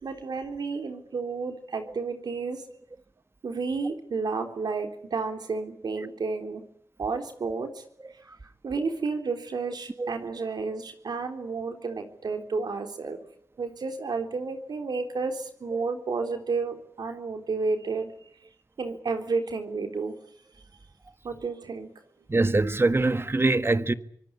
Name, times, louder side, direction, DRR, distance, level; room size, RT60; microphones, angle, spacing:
voice 1, 0.0-2.6 3.4-6.6 7.0-7.8 8.6-13.2 13.6-18.1 18.8-20.1 21.2-21.9, right 4 dB, 80° right, 3.7 m, -31 dB
voice 2, 22.3-23.9, right 2 dB, 35° right, 1.5 m, -23 dB
24.5 x 18.5 x 9.9 m
cardioid pair, 55°, 7 cm